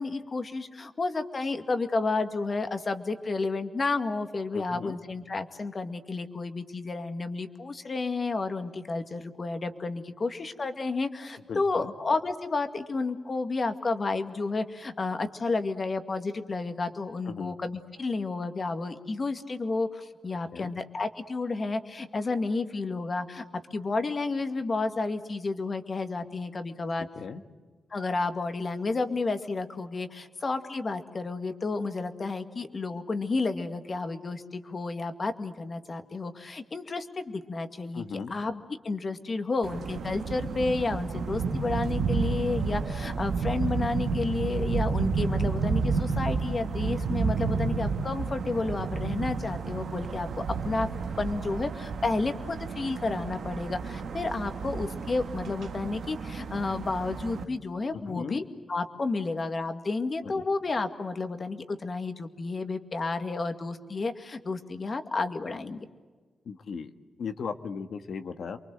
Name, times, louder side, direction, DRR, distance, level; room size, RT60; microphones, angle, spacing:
voice 1, 0.0-23.4 23.7-27.1 27.9-38.0 38.3-50.9 51.2-58.4 58.7-65.9, left 3 dB, 40° left, 8 dB, 2.1 m, -31 dB
voice 2, 4.5-5.0 11.5-11.9 17.3-17.6 20.5-20.7 27.1-27.4 37.9-38.4 58.0-58.4 66.4-66.9 67.2-68.6, left 5 dB, 75° left, 8 dB, 1.6 m, -37 dB
sound 1, 39.6-57.4, right 5 dB, 85° right, 1.7 m, -31 dB
28.5 x 23.5 x 7.9 m, 1.4 s
cardioid pair, 85°, 0 cm